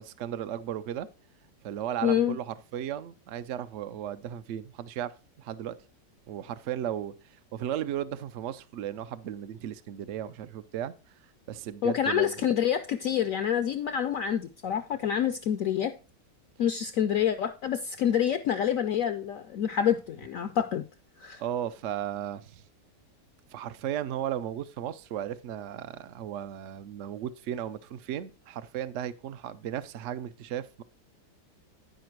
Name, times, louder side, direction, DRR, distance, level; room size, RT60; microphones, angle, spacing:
voice 1, 0.2-1.1 1.6-5.8 6.3-7.1 7.5-10.9 11.5-12.3 21.4-22.6 23.5-30.8, right 10 dB, 85° right, 0.6 m, -35 dB
voice 2, 2.0-2.4 11.8-15.9 16.6-20.8 21.2-21.4, left 9 dB, 70° left, 0.8 m, -27 dB
10.5 x 5.0 x 4.6 m
omnidirectional pair, 1.9 m